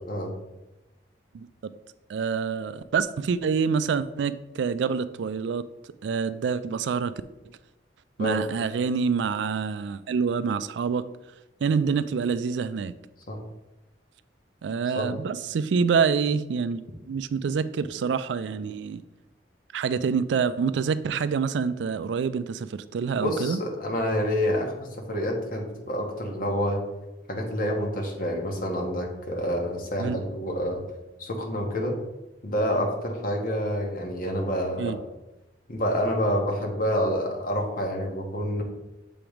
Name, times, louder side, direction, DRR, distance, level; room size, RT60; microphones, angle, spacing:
voice 1, 2.1-5.6 6.0-7.1 8.2-11.1 11.6-12.9 14.6-16.8 17.1-19.0 19.7-23.6 30.0-30.2 34.8-35.0, right 6 dB, 75° right, 14 dB, 0.3 m, -26 dB
voice 2, 23.2-26.8 27.3-30.8 31.2-32.0 32.4-35.0 35.7-38.6, equal, 50° left, 2 dB, 1.1 m, -28 dB
7.0 x 3.0 x 5.0 m, 1.0 s
head